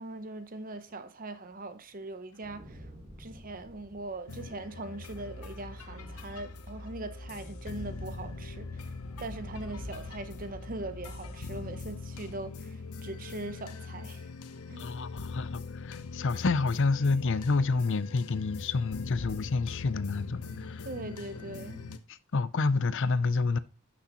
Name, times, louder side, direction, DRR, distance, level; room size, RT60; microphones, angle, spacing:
voice 1, 0.0-2.9 3.2-8.9 9.2-14.3 14.7-14.9 20.8-21.9, right 2 dB, 40° right, 0.8 m, -41 dB
sound 1, 2.3-13.6, equal, 15° left, 2.8 m, -50 dB
sound 2, 2.6-5.2, equal, 15° right, 1.8 m, -52 dB
sound 3, 4.3-22.0, left 4 dB, 80° left, 0.8 m, -42 dB
voice 2, 14.8-20.9 22.1-23.6, left 3 dB, 55° left, 0.6 m, -29 dB
11.5 x 6.4 x 3.0 m
head